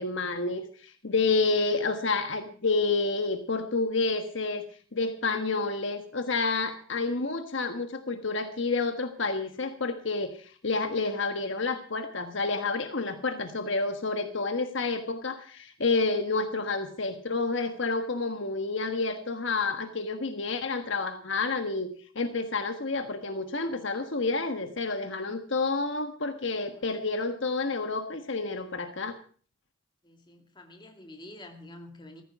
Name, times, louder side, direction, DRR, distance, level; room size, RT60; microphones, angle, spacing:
voice 1, 0.0-4.6 4.9-29.2, left 3 dB, 60° left, 7 dB, 1.4 m, -29 dB
voice 2, 30.0-32.2, left 1 dB, 20° left, 4 dB, 2.3 m, -48 dB
15.0 x 14.5 x 4.8 m, 0.43 s
head